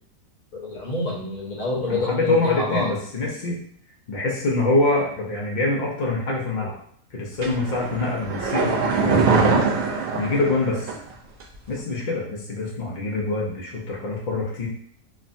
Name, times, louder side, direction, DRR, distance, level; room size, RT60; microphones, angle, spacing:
voice 1, 0.5-2.9, left 2 dB, 45° left, -3 dB, 0.8 m, -27 dB
voice 2, 1.9-3.6 4.1-6.8 7.1-8.8 9.0-9.6 10.1-10.9 11.7-14.7, left 2 dB, 65° left, -4 dB, 0.4 m, -25 dB
sound 1, 7.4-11.1 11.4-11.5, right 4 dB, 60° right, 0.7 m, -22 dB
3.3 x 2.1 x 2.5 m, 0.62 s
omnidirectional pair, 1.6 m